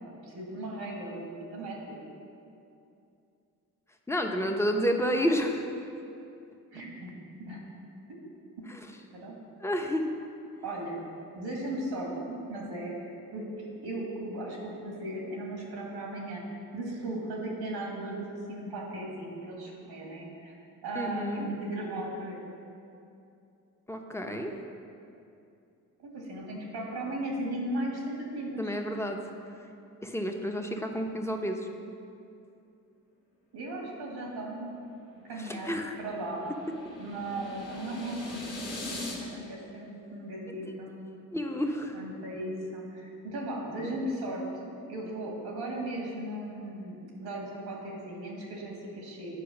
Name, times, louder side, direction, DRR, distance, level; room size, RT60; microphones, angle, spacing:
voice 1, 0.0-2.0 6.7-7.6 9.1-9.4 10.6-11.0 11.3-13.5 13.8-16.4 16.7-20.5 20.8-22.4 26.0-28.8 33.5-34.9 35.3-36.5 37.0-38.5 39.2-41.1 41.9-49.4, right 1 dB, 85° right, -2 dB, 1.9 m, -37 dB
voice 2, 4.1-5.6 9.6-10.1 20.9-21.5 23.9-24.5 28.6-29.2 30.0-31.7 35.4-36.0 41.3-42.0, equal, 5° left, 3 dB, 0.9 m, -30 dB
sound 1, 34.9-39.2, left 1 dB, 90° left, 1.6 m, -41 dB
8.5 x 4.6 x 5.9 m, 2.6 s
supercardioid pair, 50°, 39 cm